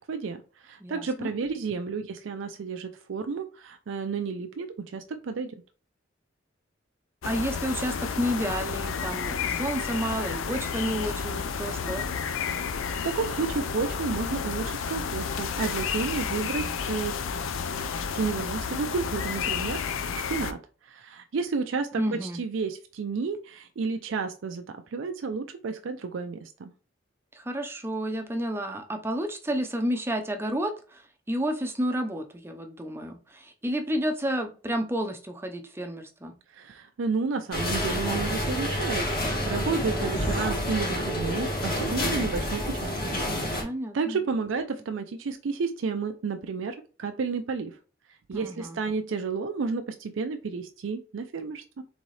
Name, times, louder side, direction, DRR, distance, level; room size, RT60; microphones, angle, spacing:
voice 1, 0.1-5.5 12.7-17.2 18.1-20.6 20.8-26.7 36.5-43.0 43.4-43.7 43.9-47.8 48.3-51.8, right 4 dB, 70° right, 7 dB, 0.4 m, -31 dB
voice 2, 0.8-1.3 7.2-12.1 22.0-22.4 27.3-31.0 31.3-36.3 43.6-44.2 48.3-48.8, equal, 10° right, 5 dB, 0.5 m, -31 dB
sound 1, 7.2-20.5, left 6 dB, 85° left, 0.5 m, -31 dB
sound 2, 37.5-43.6, equal, 50° left, 2.0 m, -28 dB
4.1 x 3.6 x 3.1 m, 0.37 s
head